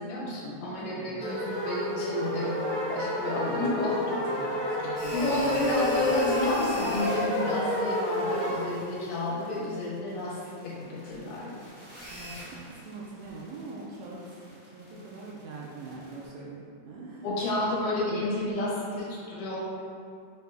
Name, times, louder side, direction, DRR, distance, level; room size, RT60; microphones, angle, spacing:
voice 1, 0.0-2.6 2.9-4.2 4.9-10.4 10.6-11.5 17.2-19.6, left 2 dB, 75° left, -6 dB, 2.3 m, -30 dB
voice 2, 0.7-1.2 4.1-6.0 12.1-14.2 14.7-17.3, right 3 dB, 80° right, -4 dB, 1.6 m, -43 dB
sound 1, 1.2-8.6, left 1 dB, 55° right, 0.4 m, -30 dB
sound 2, 5.0-16.3, equal, 50° left, 0.6 m, -44 dB
5.5 x 2.2 x 3.3 m, 2.3 s
omnidirectional pair, 3.5 m